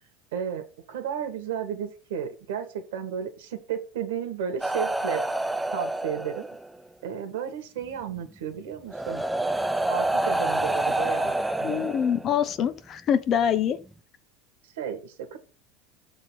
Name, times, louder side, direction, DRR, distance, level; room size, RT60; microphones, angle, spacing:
voice 1, 0.3-5.2 5.7-6.5 7.0-9.3 9.9-11.9 14.8-15.4, right 8 dB, 80° right, 1.8 m, -33 dB
sound 1, 4.6-6.8 8.1-8.2 8.9-12.5 13.6-13.8, right 1 dB, 5° right, 0.5 m, -28 dB
voice 2, 11.6-13.8, left 8 dB, 45° left, 1.0 m, -24 dB
6.3 x 4.0 x 6.2 m
hypercardioid pair, 95°, 0 cm